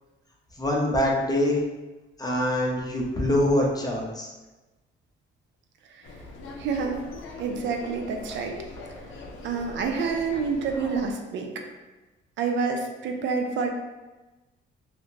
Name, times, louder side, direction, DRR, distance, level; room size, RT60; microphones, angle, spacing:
voice 1, 0.6-1.6 2.2-4.3, left 1 dB, 20° left, -2 dB, 0.5 m, -24 dB
sound 1, 6.0-11.1, left 3 dB, 80° left, 0.5 m, -41 dB
voice 2, 6.6-7.1 7.4-8.6 9.4-11.5 12.4-13.7, right 5 dB, 65° right, 3 dB, 0.4 m, -28 dB
2.5 x 2.1 x 3.1 m, 1.1 s
cardioid pair, 90°, 20 cm